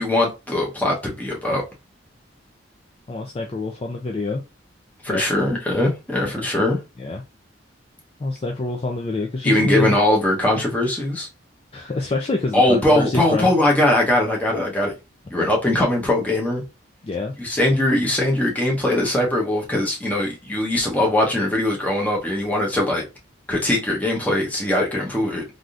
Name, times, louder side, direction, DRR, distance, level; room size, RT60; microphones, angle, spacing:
voice 1, 0.0-1.6 5.0-6.8 9.4-11.3 12.5-14.9 15.3-16.6 17.4-23.0 23.5-25.4, left 1 dB, 10° left, 0.8 m, -21 dB
voice 2, 3.1-4.4 5.1-5.6 6.3-6.5 7.0-7.2 8.2-10.0 11.7-13.5 17.0-17.4, left 2 dB, 30° left, 0.4 m, -26 dB
3.4 x 2.6 x 2.4 m
head